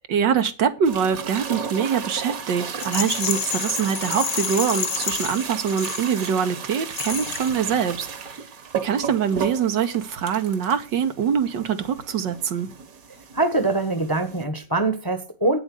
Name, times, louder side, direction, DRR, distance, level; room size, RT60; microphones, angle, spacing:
voice 1, 0.1-8.4 8.7-12.7, right 7 dB, 85° right, 1.9 m, -24 dB
sound 1, 0.8-14.4, right 6 dB, 55° right, 1.5 m, -34 dB
Rattle, 2.8-6.4 6.9-7.6, left 7 dB, 50° left, 1.6 m, -29 dB
voice 2, 13.3-15.6, right 2 dB, 15° left, 0.9 m, -23 dB
8.7 x 7.8 x 6.8 m
omnidirectional pair, 1.9 m